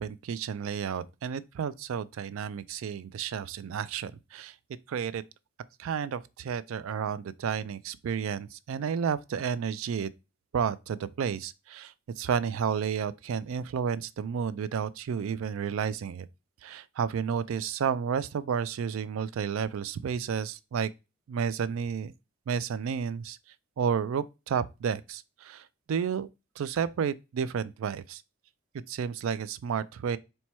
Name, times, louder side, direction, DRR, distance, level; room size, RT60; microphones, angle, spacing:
voice 1, 0.0-4.6 4.9-5.2 5.8-10.1 10.5-16.3 16.6-20.9 21.3-22.1 22.5-23.4 23.8-26.3 26.6-28.2 28.9-30.2, right 7 dB, 70° right, 0.3 m, -31 dB
4.4 x 2.2 x 4.2 m
head